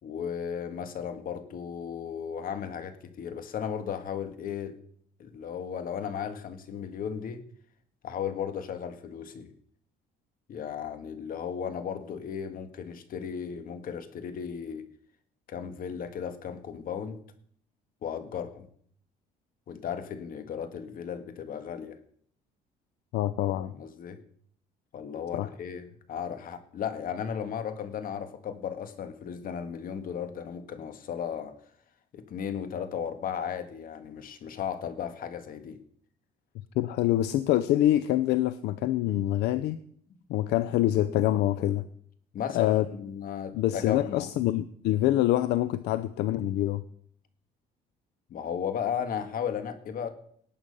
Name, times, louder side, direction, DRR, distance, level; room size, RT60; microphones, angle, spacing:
voice 1, 0.0-4.8 5.2-7.4 8.0-9.5 10.5-14.8 15.5-17.2 18.0-18.7 19.7-22.0 23.6-24.2 24.9-31.5 32.1-35.8 42.3-44.3 48.3-50.1, left 8 dB, 60° left, 9 dB, 1.7 m, -35 dB
voice 2, 23.1-23.7 25.3-25.5 36.8-39.8 40.3-41.8 42.5-42.8 43.5-46.8, left 14 dB, 80° left, 14 dB, 0.6 m, -25 dB
18.5 x 8.8 x 5.5 m, 0.63 s
cardioid pair, 110°, 17 cm